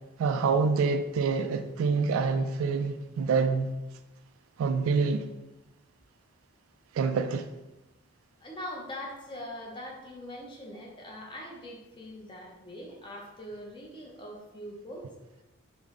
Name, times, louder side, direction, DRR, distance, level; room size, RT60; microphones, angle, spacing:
voice 1, 0.2-3.7 4.6-5.2 7.0-7.5, right 4 dB, 80° right, 0.3 m, -26 dB
voice 2, 8.4-15.1, left 1 dB, 25° left, 0.6 m, -42 dB
3.5 x 2.0 x 3.6 m
head